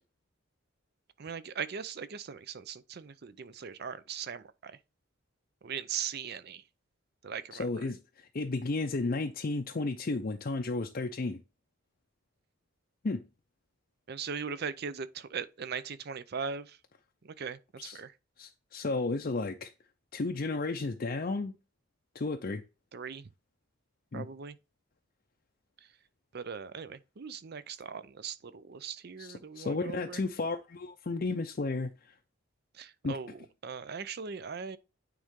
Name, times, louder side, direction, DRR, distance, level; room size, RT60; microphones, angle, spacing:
voice 1, 1.2-4.7 5.6-6.6 7.2-7.9 14.1-16.8 17.2-18.1 22.9-23.3 24.1-24.6 26.3-30.2 32.8-34.8, right 6 dB, 50° right, 0.5 m, -39 dB
voice 2, 7.5-11.4 13.0-13.2 17.8-18.0 18.4-19.7 20.1-21.5 22.1-22.6 24.1-24.3 29.2-31.9 33.0-33.2, left 3 dB, 45° left, 0.5 m, -33 dB
9.1 x 3.7 x 3.6 m
head